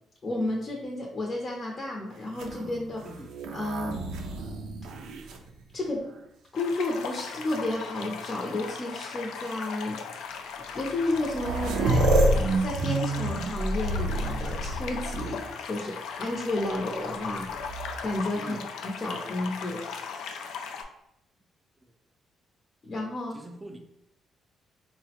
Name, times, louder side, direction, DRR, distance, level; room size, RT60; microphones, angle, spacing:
voice 1, 0.2-3.0 3.5-4.0 5.7-6.0 6.5-10.3 10.7-12.1 12.6-17.7 18.0-19.8 22.9-23.4, left 2 dB, 40° left, -2 dB, 0.6 m, -32 dB
sound 1, 2.3-6.1 6.8-7.5 8.6-8.7 9.5-9.6 10.8-10.9 11.1-15.5 17.5-18.2, right 1 dB, 85° right, 0.3 m, -29 dB
sound 2, 6.5-20.8, left 6 dB, 85° left, 0.3 m, -38 dB
voice 2, 23.3-23.8, right 1 dB, 20° right, 4 dB, 0.4 m, -42 dB
3.7 x 2.1 x 2.8 m, 0.82 s
cardioid pair, 90°, 0 cm